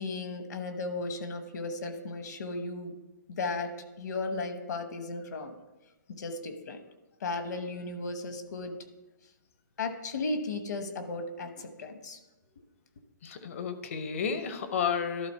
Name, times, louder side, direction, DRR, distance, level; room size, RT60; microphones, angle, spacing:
voice 1, 0.0-2.9 3.3-3.7 4.0-5.5 6.2-6.8 7.2-8.8 9.8-12.2, left 3 dB, 65° left, 8 dB, 1.1 m, -35 dB
voice 2, 13.2-15.3, left 6 dB, 45° left, 10 dB, 0.7 m, -32 dB
12.0 x 4.0 x 5.4 m, 1.0 s
hypercardioid pair, 170°, 10 cm